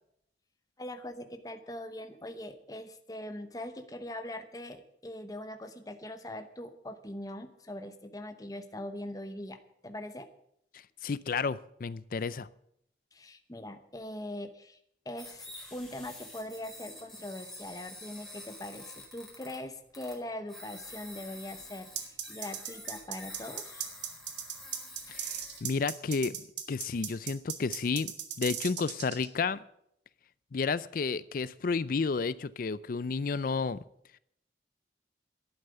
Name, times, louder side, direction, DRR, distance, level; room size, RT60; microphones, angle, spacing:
voice 1, 0.8-10.3 13.1-14.8 15.0-23.9, left 1 dB, 20° left, 8 dB, 0.9 m, -42 dB
voice 2, 11.0-12.5 25.1-26.4 26.7-28.1 28.4-29.6 30.5-33.8, left 4 dB, 50° left, 18 dB, 0.4 m, -31 dB
sound 1, 15.2-19.6 19.9-20.2 20.5-25.6, left 1 dB, ahead, 4.7 m, -48 dB
sound 2, 22.0-29.3, right 10 dB, 85° right, 1.7 m, -37 dB
11.5 x 9.0 x 9.2 m, 0.74 s
head